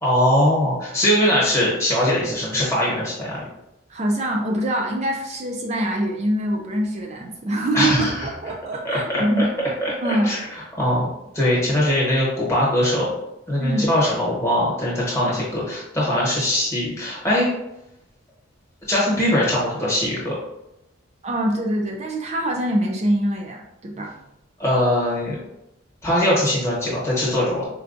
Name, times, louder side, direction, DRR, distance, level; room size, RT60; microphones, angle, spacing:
voice 1, 0.0-3.3 7.7-8.3 8.8-9.5 9.8-10.5 10.8-11.1 11.3-13.1 13.5-17.5 18.9-20.4 24.6-25.3 26.0-27.7, left 1 dB, 15° left, -6 dB, 1.0 m, -21 dB
voice 2, 3.9-9.5 10.0-10.4 13.6-13.9 21.2-24.1, right 1 dB, 30° right, 0 dB, 0.4 m, -24 dB
4.4 x 2.2 x 2.5 m, 0.87 s
head